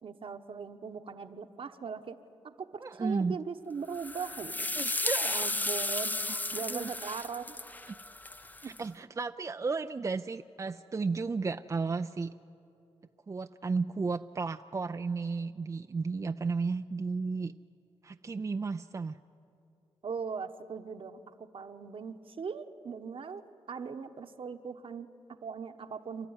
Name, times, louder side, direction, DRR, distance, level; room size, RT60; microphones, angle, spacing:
voice 1, 0.0-2.2 2.4-4.7 5.2-6.2 6.5-7.6 8.6-8.7 20.0-26.3, right 6 dB, 55° right, 8 dB, 1.1 m, -40 dB
voice 2, 2.8-3.4 4.8-5.5 6.3-6.4 6.7-6.9 7.9-8.0 8.6-12.3 13.3-17.5 18.0-19.2, right 4 dB, 30° right, 8 dB, 0.4 m, -33 dB
sound 1, 3.9-8.8, left 2 dB, 15° left, 0.6 m, -34 dB
29.0 x 12.5 x 9.6 m, 2.9 s
cardioid pair, 75°, 11 cm